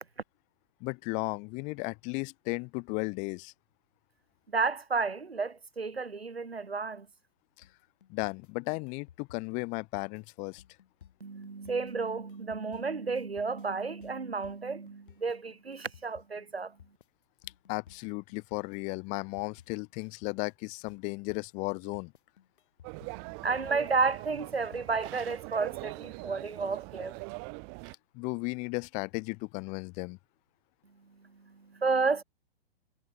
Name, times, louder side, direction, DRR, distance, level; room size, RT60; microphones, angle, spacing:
voice 1, 0.8-3.5 8.1-10.6 17.7-22.1 28.1-30.2, left 30 dB, 25° left, 0.7 m, -35 dB
voice 2, 4.5-7.1 11.2-16.7 23.4-27.2 31.5-32.2, right 4 dB, 85° right, 1.6 m, -32 dB
sound 1, 7.6-25.2, left 9 dB, 55° left, 7.3 m, -57 dB
sound 2, 22.8-27.9, right 40 dB or more, 35° right, 4.9 m, -42 dB
figure-of-eight pair, 115°, 30 cm